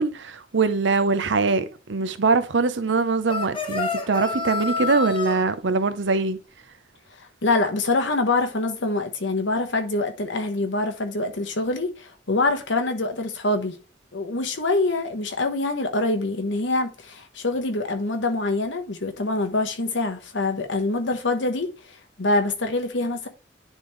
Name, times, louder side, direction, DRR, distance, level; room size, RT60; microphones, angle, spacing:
voice 1, 0.0-6.4, right 4 dB, 70° right, 0.7 m, -22 dB
sound 1, 3.3-5.4, left 3 dB, 25° left, 0.9 m, -28 dB
voice 2, 7.2-13.8 14.1-23.3, left 2 dB, 75° left, 1.1 m, -25 dB
10.0 x 3.5 x 3.2 m
head